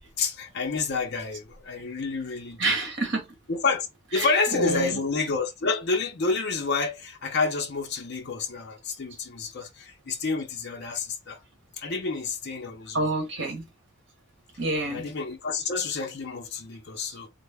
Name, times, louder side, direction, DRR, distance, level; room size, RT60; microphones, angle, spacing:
voice 1, 0.2-2.8 3.5-3.9 4.1-11.4 11.8-13.1 14.9-17.3, left 4 dB, 50° left, 0.5 m, -29 dB
voice 2, 2.6-3.2 4.2-4.3 4.5-5.0 12.9-13.6 14.6-15.0, right 2 dB, 55° right, 1.1 m, -27 dB
3.1 x 2.0 x 3.4 m
head